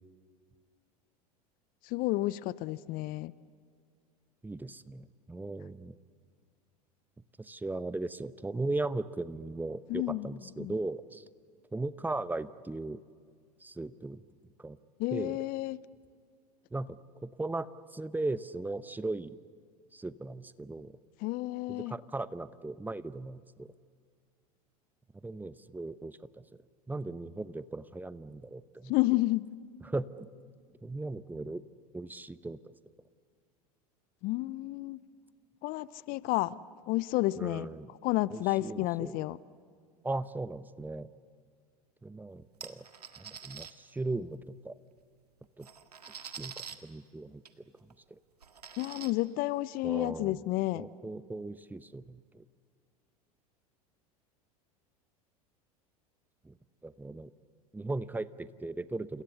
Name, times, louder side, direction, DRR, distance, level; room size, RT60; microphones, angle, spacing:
voice 1, 1.9-3.3 9.9-10.3 10.6-10.7 15.0-15.8 21.2-21.9 28.9-29.5 34.2-35.0 35.6-36.5 36.9-37.7 38.0-39.4 48.8-50.9, left 18 dB, 45° left, 20 dB, 0.7 m, -30 dB
voice 2, 4.4-5.9 7.4-11.2 11.7-13.0 13.6-14.2 14.6-14.8 15.1-15.4 16.7-19.4 19.9-20.9 21.7-23.7 25.2-26.4 26.9-28.9 29.8-30.3 30.8-31.6 31.9-32.6 37.4-37.9 38.3-39.3 40.0-41.1 42.0-42.9 43.2-44.8 45.6-45.7 46.2-47.4 49.8-50.4 50.7-52.4 56.4-56.5 56.8-57.3 57.7-59.2, right 2 dB, 10° right, 15 dB, 0.9 m, -37 dB
sound 1, 42.6-43.7 45.0-45.1 45.4-46.7 47.4-47.5 47.9-48.0 48.4-49.1, right 7 dB, 85° right, 1.7 m, -45 dB
30.0 x 27.5 x 7.0 m, 2.1 s
figure-of-eight pair, 80°, 20 cm